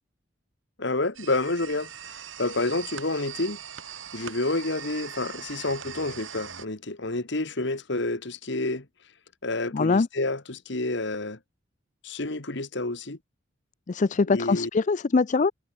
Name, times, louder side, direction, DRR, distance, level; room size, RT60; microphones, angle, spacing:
voice 1, 0.8-1.9 2.4-3.6 4.1-8.9 9.4-11.4 12.0-13.2 14.3-14.7, left 2 dB, 65° left, 2.0 m, -29 dB
sound 1, 1.1-6.7, right 8 dB, 80° right, 7.6 m, -41 dB
voice 2, 9.7-10.1 13.9-15.5, left 4 dB, 40° left, 0.4 m, -23 dB
head